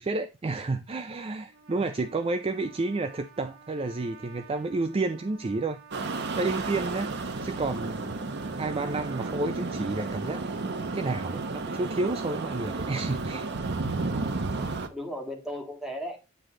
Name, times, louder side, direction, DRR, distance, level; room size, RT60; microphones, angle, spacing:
voice 1, 0.0-5.8 6.4-7.1 7.4-8.2 8.6-13.5, right 3 dB, 30° right, 0.4 m, -30 dB
Trumpet, 1.4-9.4, right 5 dB, 80° right, 1.5 m, -52 dB
sound 1, 5.9-14.9, right 3 dB, 55° right, 0.8 m, -32 dB
voice 2, 14.6-16.2, equal, ahead, 1.6 m, -37 dB
9.4 x 3.2 x 3.7 m
head